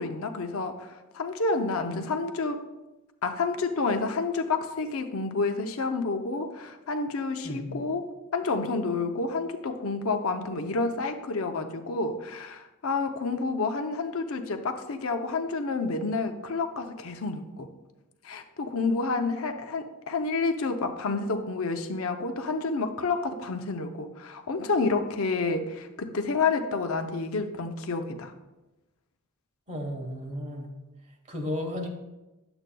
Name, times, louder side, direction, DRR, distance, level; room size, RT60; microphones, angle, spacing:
voice 1, 0.0-2.6 3.2-17.7 18.2-28.3, left 3 dB, 70° left, 6 dB, 0.6 m, -29 dB
voice 2, 7.4-7.8 29.7-30.7 31.3-31.9, left 1 dB, 30° right, 2 dB, 1.2 m, -33 dB
10.5 x 7.8 x 2.2 m, 1.0 s
head